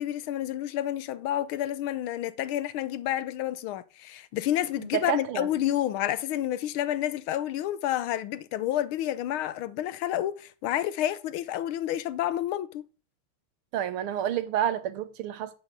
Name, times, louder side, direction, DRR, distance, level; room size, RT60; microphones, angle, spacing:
voice 1, 0.0-12.8, left 12 dB, 75° left, 1.5 m, -29 dB
voice 2, 4.8-5.5 13.7-15.5, right 10 dB, 80° right, 1.8 m, -29 dB
8.2 x 7.6 x 6.8 m
omnidirectional pair, 2.4 m